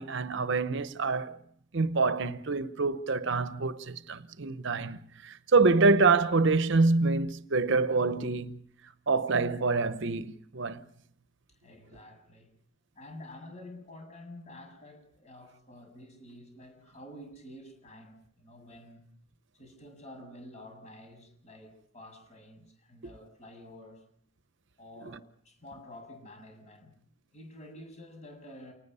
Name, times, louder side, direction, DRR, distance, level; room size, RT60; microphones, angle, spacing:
voice 1, 0.0-1.4 1.7-8.6 9.1-10.8, right 3 dB, 60° right, 0.8 m, -26 dB
voice 2, 11.6-12.5 12.9-19.0 19.5-24.0 24.8-26.9 27.3-28.7, left 1 dB, 35° left, 7.6 m, -49 dB
28.5 x 20.0 x 5.5 m
head